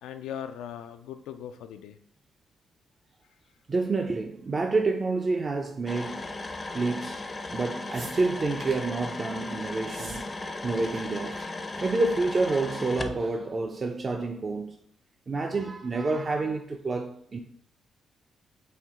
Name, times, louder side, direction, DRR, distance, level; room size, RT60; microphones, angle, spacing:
voice 1, 0.0-2.0, left 9 dB, 90° left, 0.3 m, -39 dB
voice 2, 3.7-6.2 6.7-7.2 7.5-11.4 11.8-14.8 15.3-17.4, right 3 dB, 40° right, 0.4 m, -28 dB
sound 1, 5.9-13.2, left 2 dB, 30° left, 0.5 m, -36 dB
sound 2, 7.9-8.9 9.8-10.2 10.5-11.0 11.3-11.4 11.7-12.0 13.0-13.1, right 3 dB, 70° right, 1.2 m, -44 dB
4.3 x 2.6 x 3.6 m
cardioid pair, 70°, 0 cm